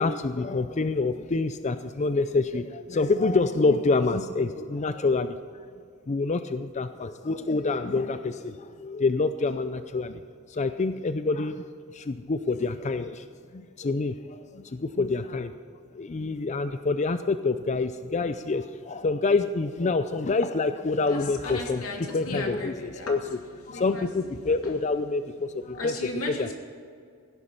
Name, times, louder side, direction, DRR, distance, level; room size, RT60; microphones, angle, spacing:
voice 1, 0.0-5.7 6.1-10.2 10.5-11.7 11.9-15.5 15.9-21.9 22.1-23.2 23.6-25.9 26.3-26.5, left 3 dB, 35° left, 10 dB, 0.5 m, -27 dB
voice 2, 21.1-23.1 23.7-24.1 24.3-24.7 25.7-26.5, left 2 dB, 90° left, 1 dB, 2.7 m, -36 dB
16.5 x 10.5 x 5.6 m, 2.2 s
head